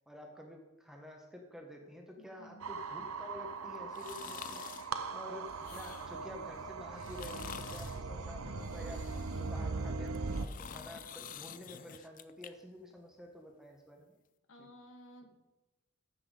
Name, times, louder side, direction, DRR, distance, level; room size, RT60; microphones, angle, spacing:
voice 1, 0.0-14.1 14.5-14.7, left 1 dB, ahead, 1 dB, 1.2 m, -50 dB
voice 2, 2.2-2.6 5.0-5.1 14.5-15.4, equal, 60° left, 4 dB, 1.5 m, -55 dB
sound 1, 2.6-10.5, right 4 dB, 75° right, 0.7 m, -40 dB
sound 2, 3.9-4.9 5.5-6.3 7.0-8.0 8.6-9.5 10.1-12.5 12.9-13.0, left 8 dB, 40° left, 0.4 m, -48 dB
14.5 x 6.1 x 5.0 m, 1.0 s
head